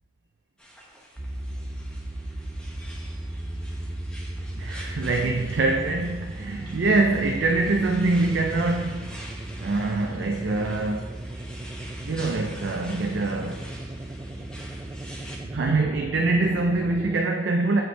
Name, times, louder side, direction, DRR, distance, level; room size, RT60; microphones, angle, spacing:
sound 1, 0.6-15.4, equal, 5° left, 0.8 m, -46 dB
sound 2, 1.2-17.2, right 1 dB, 15° right, 0.3 m, -36 dB
voice 1, 4.5-9.1 9.6-11.2 12.0-13.6 15.4-17.8, right 3 dB, 85° right, 1 dB, 0.5 m, -24 dB
7.4 x 5.2 x 3.3 m, 1.3 s
head